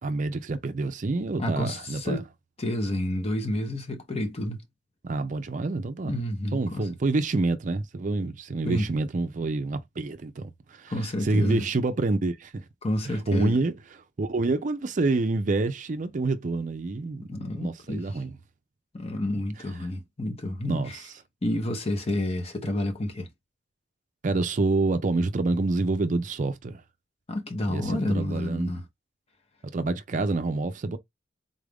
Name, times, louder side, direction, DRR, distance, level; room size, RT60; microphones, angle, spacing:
voice 1, 0.0-2.2 5.0-6.2 6.5-12.7 13.0-13.7 14.2-18.4 20.7-21.0 24.2-26.8 27.7-28.7 29.7-31.0, right 3 dB, 45° right, 0.5 m, -27 dB
voice 2, 1.4-2.2 2.6-4.6 6.0-6.8 8.6-8.9 10.9-11.7 12.8-13.6 17.3-18.1 18.9-21.0 21.4-23.3 27.3-28.8, left 1 dB, 35° left, 0.8 m, -29 dB
3.9 x 2.5 x 3.3 m
head